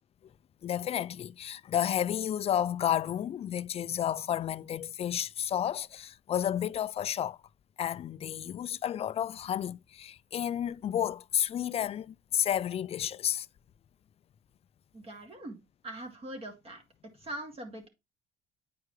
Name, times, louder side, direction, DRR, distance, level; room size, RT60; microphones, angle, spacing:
voice 1, 0.6-7.4 7.8-13.5, left 10 dB, 35° left, 0.4 m, -31 dB
voice 2, 14.9-15.6 15.8-16.8 17.2-17.9, right 1 dB, 35° right, 2.4 m, -42 dB
9.4 x 4.7 x 3.1 m
cardioid pair, 110°, 17 cm